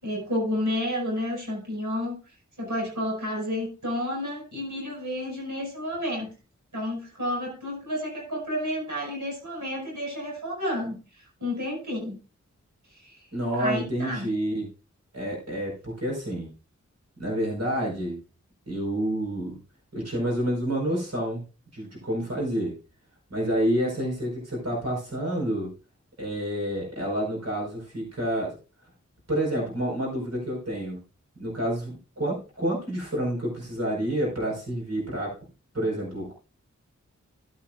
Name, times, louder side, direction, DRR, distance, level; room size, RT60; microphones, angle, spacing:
voice 1, 0.0-2.1 2.6-6.3 6.7-12.2 12.9-13.3 13.6-14.3, left 1 dB, 85° right, -2 dB, 5.7 m, -31 dB
voice 2, 13.3-14.7 15.1-16.5 17.2-18.2 18.7-19.6 19.9-21.4 21.7-22.7 23.3-25.7 26.2-28.6 29.3-31.0 31.4-35.4 35.7-36.3, right 1 dB, 60° right, -3 dB, 5.1 m, -28 dB
16.0 x 9.0 x 2.5 m, 0.34 s
wide cardioid pair, 65°, 29 cm